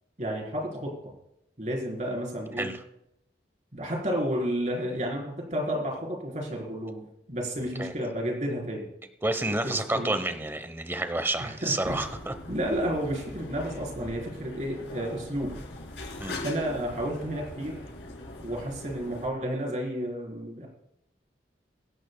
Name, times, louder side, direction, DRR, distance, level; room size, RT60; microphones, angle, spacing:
voice 1, 0.2-0.9 1.6-2.7 3.7-8.9 9.4-10.1 11.4-12.0 12.5-15.5 16.4-17.8 18.4-20.7, equal, 40° right, 0 dB, 4.1 m, -31 dB
voice 2, 9.2-12.3 16.2-16.4, right 2 dB, 15° right, 9 dB, 1.0 m, -29 dB
sound 1, 11.8-19.3, left 1 dB, 80° left, 4.4 m, -41 dB
24.0 x 11.0 x 2.3 m, 0.81 s
head